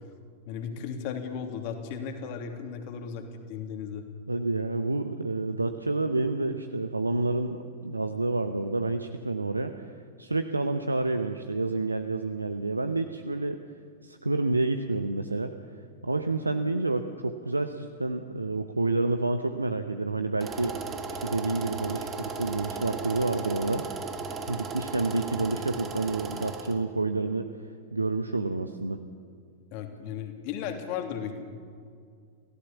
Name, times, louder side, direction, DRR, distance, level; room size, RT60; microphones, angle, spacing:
voice 1, 0.5-4.1 29.7-31.4, left 7 dB, 45° left, 4 dB, 2.9 m, -35 dB
voice 2, 4.3-9.7 10.2-13.6 14.0-15.5 16.0-20.8 21.1-23.8 24.5-27.5 27.9-29.0, right 2 dB, 80° right, 8 dB, 1.0 m, -29 dB
sound 1, 20.4-26.8, right 4 dB, 25° right, 3.4 m, -36 dB
29.5 x 16.5 x 7.2 m, 2.2 s
figure-of-eight pair, 90°, 0 cm